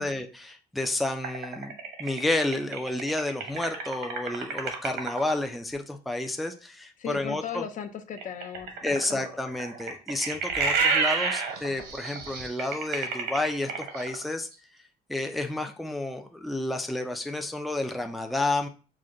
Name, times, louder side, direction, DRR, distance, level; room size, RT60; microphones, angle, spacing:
voice 1, 0.0-1.7 2.0-7.6 8.8-14.5 15.1-18.7, left 2 dB, ahead, 4 dB, 0.4 m, -30 dB
sound 1, 1.2-5.3 8.2-14.2, right 5 dB, 75° right, 1.2 m, -29 dB
voice 2, 7.0-9.2, left 8 dB, 50° left, 8 dB, 0.5 m, -37 dB
5.0 x 2.2 x 3.7 m, 0.36 s
cardioid pair, 110°, 17 cm